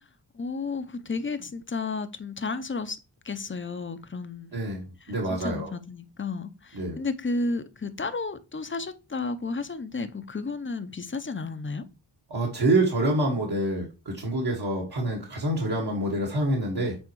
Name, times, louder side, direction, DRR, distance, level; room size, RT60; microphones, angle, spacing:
voice 1, 0.3-3.0 3.2-4.5 5.0-11.8, left 3 dB, 25° left, 0.7 m, -32 dB
voice 2, 4.5-4.8 5.1-5.7 6.7-7.0 12.3-17.0, right 1 dB, 60° right, 1.8 m, -26 dB
8.3 x 4.2 x 3.0 m
wide cardioid pair, 100°, 44 cm